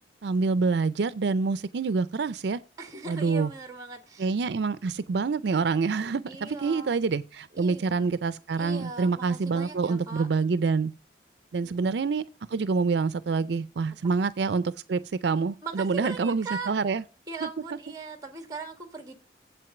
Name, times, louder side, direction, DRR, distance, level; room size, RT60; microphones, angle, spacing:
voice 1, 0.2-2.6 3.1-3.5 4.2-10.9 11.5-12.2 12.5-17.0 17.4-17.5, right 4 dB, 70° right, 0.4 m, -26 dB
voice 2, 2.8-4.3 6.3-7.0 7.5-8.1 8.6-10.3 11.6-12.0 15.6-16.7 17.3-19.1, right 4 dB, 20° right, 1.6 m, -39 dB
7.8 x 7.6 x 6.0 m
head